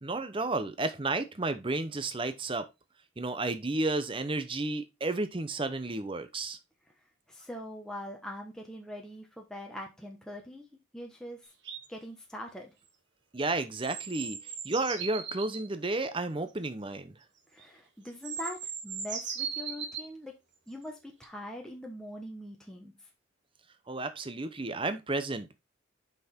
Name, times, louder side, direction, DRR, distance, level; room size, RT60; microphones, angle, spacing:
voice 1, 0.0-2.7 3.2-6.6 13.3-17.1 23.9-25.6, right 2 dB, 25° right, 0.7 m, -32 dB
voice 2, 7.3-10.7 10.9-11.5 11.9-12.7 17.5-20.3 20.7-22.9, left 1 dB, 5° left, 1.1 m, -42 dB
sound 1, 11.6-11.9 13.7-15.7 17.6-17.7 18.1-20.1 21.2-21.3, right 7 dB, 55° right, 1.7 m, -38 dB
6.1 x 5.7 x 4.3 m
head